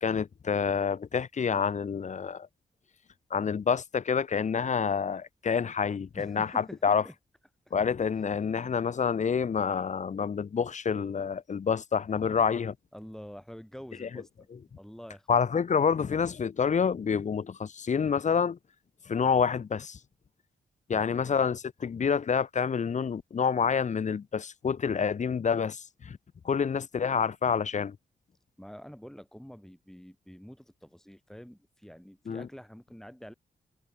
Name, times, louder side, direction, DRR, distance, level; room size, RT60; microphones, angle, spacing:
voice 1, 0.0-2.5 3.3-7.0 7.7-12.7 14.0-14.1 15.3-18.6 19.1-20.0 20.9-26.2 26.4-28.0 32.3-32.5, left 6 dB, 45° left, 0.7 m, -28 dB
voice 2, 6.2-7.1 7.7-7.8 12.9-15.5 20.9-21.4 28.6-33.3, equal, 5° left, 5.1 m, -47 dB
cardioid pair, 65°, 16 cm